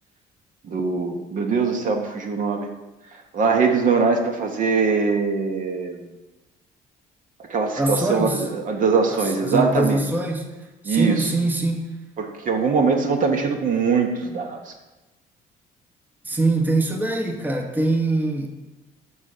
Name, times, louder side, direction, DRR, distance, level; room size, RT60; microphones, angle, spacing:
voice 1, 0.6-2.7 3.3-6.0 7.5-10.0 10.8-11.3 12.2-14.7, right 5 dB, 50° right, 4 dB, 1.0 m, -22 dB
voice 2, 7.8-8.4 9.1-10.5 10.8-11.9 16.2-18.5, right 2 dB, 10° right, 3 dB, 0.9 m, -23 dB
5.6 x 4.9 x 6.5 m, 1.1 s
cardioid pair, 110°, 17 cm